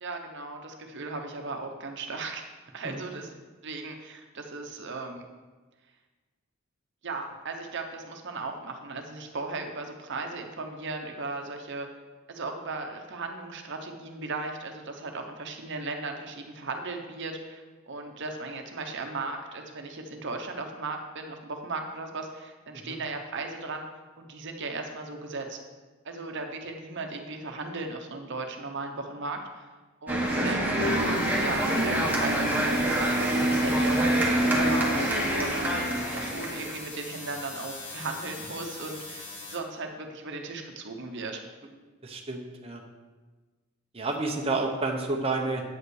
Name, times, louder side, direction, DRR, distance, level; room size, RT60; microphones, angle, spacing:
voice 1, 0.0-2.5 2.7-3.3 3.6-5.2 7.0-11.9 12.3-23.9 24.2-25.6 26.0-29.7 30.0-41.4, right 3 dB, 60° right, 4 dB, 1.0 m, -37 dB
sound 1, 30.1-36.8, right 1 dB, 10° right, 1.7 m, -25 dB
sound 2, 30.7-39.6, left 3 dB, 55° left, 2.3 m, -42 dB
voice 2, 42.0-42.8 43.9-45.6, right 3 dB, 30° right, 1 dB, 0.9 m, -30 dB
8.8 x 5.6 x 6.4 m, 1.3 s
head